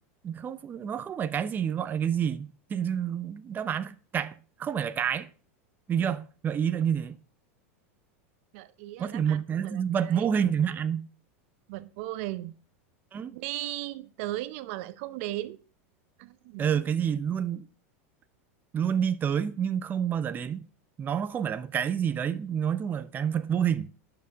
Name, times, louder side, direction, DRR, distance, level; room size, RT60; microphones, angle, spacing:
voice 1, 0.2-4.3 4.6-5.3 5.9-7.2 9.0-11.1 13.1-13.3 16.6-17.7 18.7-20.6 21.0-23.9, right 8 dB, 25° right, 0.8 m, -28 dB
voice 2, 8.5-10.3 11.7-12.6 13.3-15.6 16.2-16.7, right 16 dB, 60° right, 0.8 m, -37 dB
11.0 x 6.9 x 6.2 m
supercardioid pair, 125°, 8 cm